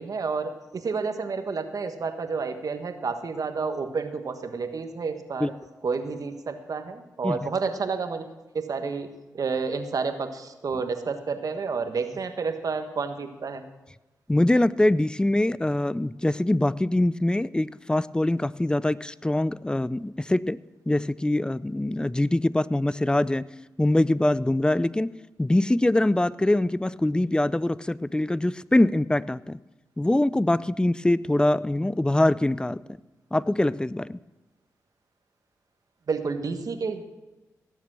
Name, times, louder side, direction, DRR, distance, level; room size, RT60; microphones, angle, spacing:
voice 1, 0.0-5.5 5.8-8.2 8.5-9.1 9.3-13.6 36.1-37.0, right 4 dB, 60° right, 7 dB, 1.4 m, -30 dB
voice 2, 14.3-20.6 20.9-23.5 23.8-29.6 30.0-32.8 33.3-34.2, left 1 dB, 15° left, 19 dB, 0.5 m, -23 dB
17.5 x 7.2 x 6.2 m, 1.1 s
supercardioid pair, 45°, 7 cm